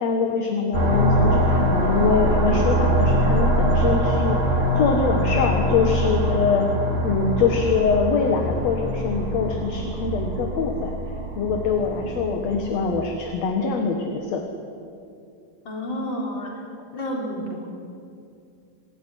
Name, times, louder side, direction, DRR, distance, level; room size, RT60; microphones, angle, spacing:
voice 1, 0.0-4.4 4.8-6.7 7.0-10.9 11.4-14.4, left 5 dB, 55° left, 3 dB, 2.3 m, -23 dB
sound 1, 0.7-13.1, right 1 dB, 80° right, 5.2 m, -23 dB
voice 2, 15.6-16.6 16.9-17.7, equal, 30° left, -1 dB, 4.8 m, -30 dB
25.0 x 15.0 x 10.0 m, 2.4 s
omnidirectional pair, 4.2 m